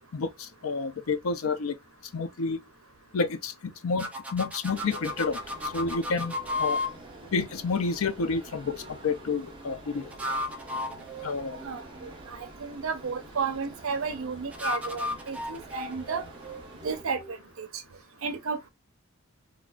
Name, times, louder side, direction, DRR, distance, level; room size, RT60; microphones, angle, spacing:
voice 1, 0.1-1.8 2.1-2.6 3.1-6.3 6.6-6.8 7.3-10.1 11.2-11.6, left 4 dB, 85° left, 0.5 m, -30 dB
sound 1, 4.0-6.9 10.0-12.1 14.5-17.4, left 2 dB, 5° right, 0.4 m, -34 dB
sound 2, 4.7-17.0, right 2 dB, 20° right, 0.8 m, -47 dB
voice 2, 11.6-16.2 16.8-17.8 18.2-18.7, right 5 dB, 75° right, 0.6 m, -33 dB
3.6 x 2.2 x 2.3 m
head